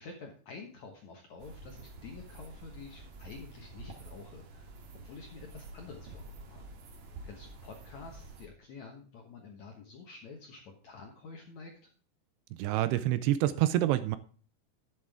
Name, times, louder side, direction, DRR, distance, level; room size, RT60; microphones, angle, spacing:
voice 1, 0.0-4.7 5.0-6.6 7.2-11.9, left 4 dB, 70° left, 1.8 m, -49 dB
sound 1, 1.4-8.5, right 2 dB, 60° right, 3.3 m, -49 dB
voice 2, 12.6-14.2, right 14 dB, 80° right, 2.5 m, -27 dB
11.0 x 8.7 x 3.5 m
omnidirectional pair, 5.0 m